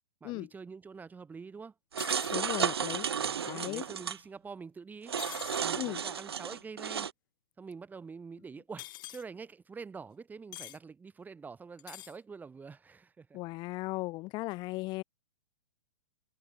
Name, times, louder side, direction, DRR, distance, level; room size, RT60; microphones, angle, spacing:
voice 1, 0.2-1.7 3.2-5.2 5.6-7.1 7.6-13.4, right 5 dB, 10° right, 6.2 m, -46 dB
sound 1, 1.9-4.2 5.1-7.1, right 7 dB, 75° right, 1.7 m, -33 dB
sound 2, 2.0-2.4 5.2-5.7 8.8-9.2 10.5-10.8 11.8-12.2, left 17 dB, 50° left, 2.1 m, -44 dB
voice 2, 2.3-3.0 3.5-3.8 5.8-6.0 13.3-15.0, left 21 dB, 35° left, 1.1 m, -36 dB
figure-of-eight pair, 110°, 13 cm